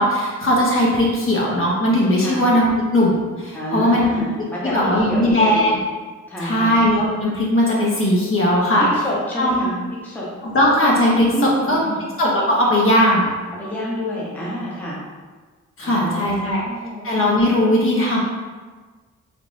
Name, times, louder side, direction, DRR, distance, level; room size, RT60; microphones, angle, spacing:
voice 1, 0.0-4.2 4.6-5.7 6.4-8.9 9.4-9.7 10.4-11.8 12.2-13.3 15.8-16.6 17.0-18.2, left 1 dB, 45° left, -4 dB, 0.7 m, -18 dB
voice 2, 3.5-5.8 6.3-6.7 8.8-9.8 10.0-10.2 11.3-12.0 13.5-15.0 15.8-17.1, equal, 5° left, -6 dB, 0.7 m, -28 dB
3.4 x 2.9 x 2.5 m, 1.4 s
wide cardioid pair, 135°, 30 cm